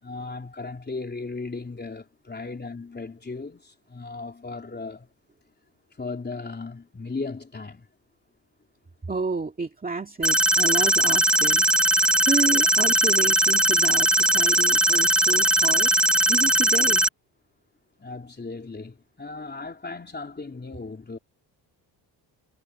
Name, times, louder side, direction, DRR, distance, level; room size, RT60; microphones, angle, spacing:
voice 1, 0.0-5.1 6.0-7.9 18.0-21.2, left 3 dB, 25° left, 3.5 m, -36 dB
voice 2, 9.1-11.7 12.3-15.9 16.3-17.0, right 4 dB, 20° right, 2.2 m, -30 dB
sound 1, 10.2-17.1, right 1 dB, ahead, 0.8 m, -20 dB
cardioid pair, 110°, 44 cm